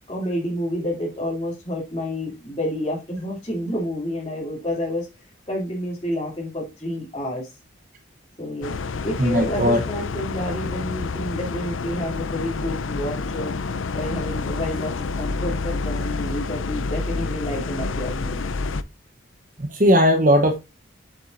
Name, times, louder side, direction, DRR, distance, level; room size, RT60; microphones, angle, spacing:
voice 1, 0.1-5.1 5.5-7.6 8.4-8.7 9.0-13.5 13.9-18.4, left 1 dB, 25° left, 2.9 m, -29 dB
sound 1, 8.6-18.8, left 4 dB, 80° left, 0.6 m, -28 dB
voice 2, 9.2-9.8 19.6-20.6, equal, 40° right, 1.0 m, -17 dB
8.2 x 7.2 x 2.6 m
head